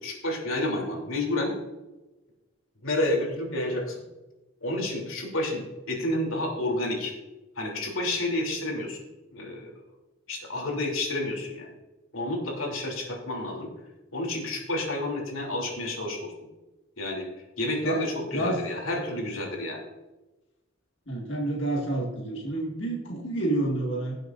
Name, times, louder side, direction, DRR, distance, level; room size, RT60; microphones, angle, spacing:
voice 1, 0.0-1.5 2.8-4.0 4.6-5.6 5.9-7.1 7.6-9.0 9.3-9.7 10.3-11.7 12.1-13.7 14.1-16.3 17.0-17.3 17.6-19.8, left 1 dB, 80° left, 0 dB, 3.1 m, -30 dB
voice 2, 18.3-18.6 21.1-24.2, right 1 dB, 60° left, -1 dB, 1.9 m, -29 dB
17.5 x 7.8 x 2.6 m, 1.1 s
head